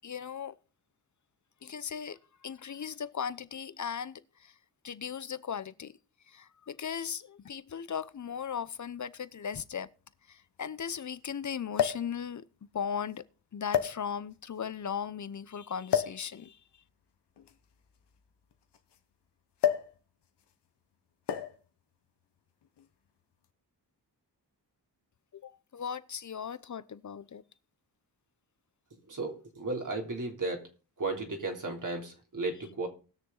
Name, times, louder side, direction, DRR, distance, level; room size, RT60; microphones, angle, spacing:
voice 1, 0.0-0.6 1.6-4.5 4.8-6.0 6.3-9.9 10.3-12.4 12.7-13.2 13.5-16.6 25.3-27.4, left 7 dB, 45° left, 0.8 m, -37 dB
sound 1, 8.0-8.1 9.2-9.3 9.6-9.7 11.7-12.1 13.0-13.2 13.7-14.4 15.9-16.2 17.4-19.0 19.6-20.0 20.2-20.5 21.3-21.7 22.6-22.9, left 9 dB, 75° left, 1.3 m, -30 dB
voice 2, 29.1-30.7 31.0-32.9, right 3 dB, 50° right, 3.5 m, -34 dB
19.5 x 6.7 x 4.0 m
cardioid pair, 80°, 41 cm